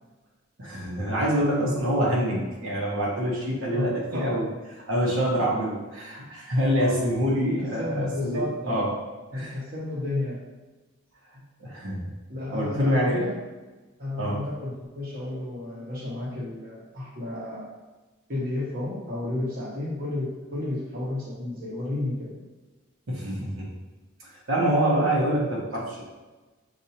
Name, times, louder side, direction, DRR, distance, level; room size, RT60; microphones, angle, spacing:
voice 1, 0.6-4.5 4.9-8.9 9.3-9.5 11.6-12.1 12.5-13.2 14.2-14.4 23.1-23.7 24.2-26.0, equal, 80° right, -4 dB, 1.2 m, -26 dB
voice 2, 3.7-4.5 5.4-5.5 6.8-7.1 7.6-9.0 9.3-10.4 12.3-13.3 14.0-17.6 18.3-22.3, left 2 dB, 45° right, -6 dB, 1.1 m, -32 dB
6.5 x 2.7 x 2.8 m, 1.2 s
head